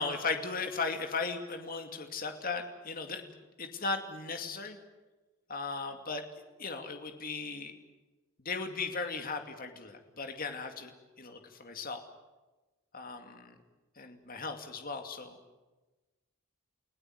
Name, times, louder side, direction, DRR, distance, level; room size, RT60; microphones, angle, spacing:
voice 1, 0.0-3.3 3.6-4.8 5.5-6.2 6.6-7.7 8.4-10.9 11.2-12.0 12.9-13.5 14.0-15.4, left 4 dB, 40° left, 5 dB, 2.5 m, -37 dB
29.5 x 17.0 x 9.4 m, 1.2 s
head